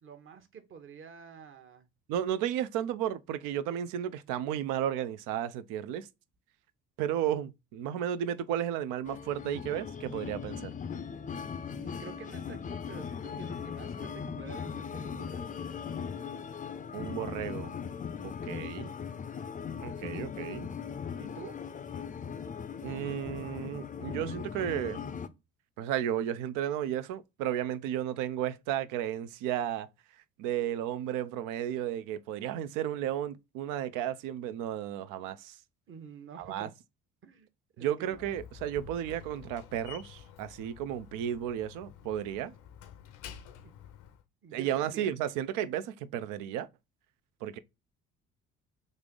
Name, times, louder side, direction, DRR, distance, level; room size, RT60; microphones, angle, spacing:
voice 1, 0.0-1.9 11.7-15.6 21.2-21.6 35.9-36.7 37.2-37.5 37.8-38.3 43.6-43.7 44.4-45.2, right 6 dB, 40° right, 0.9 m, -49 dB
voice 2, 2.1-6.1 7.0-10.7 16.9-17.7 18.2-18.9 19.8-20.7 22.8-25.0 25.8-29.9 30.4-35.6 36.4-36.7 37.8-42.5 44.5-46.7 47.4-47.6, right 10 dB, 75° right, 0.5 m, -33 dB
sound 1, 9.0-25.3, left 7 dB, 25° left, 0.4 m, -39 dB
Slam, 38.0-44.2, left 8 dB, 75° left, 0.6 m, -50 dB
3.3 x 2.5 x 3.6 m
supercardioid pair, 65°, 32 cm